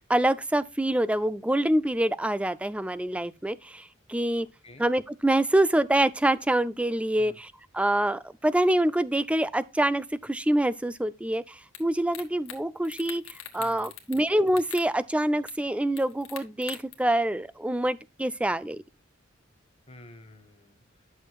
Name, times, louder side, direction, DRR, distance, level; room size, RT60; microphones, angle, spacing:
voice 1, 0.1-4.5 4.8-18.8, right 1 dB, 5° right, 0.3 m, -26 dB
sound 1, 11.7-11.8 12.1-12.6 12.8-14.2 14.5-14.9 15.5-15.6 16.0-16.9, left 10 dB, 80° left, 1.6 m, -41 dB
voice 2, 13.6-14.1 19.9-21.0, left 1 dB, 30° left, 1.4 m, -51 dB
11.0 x 6.4 x 2.3 m
head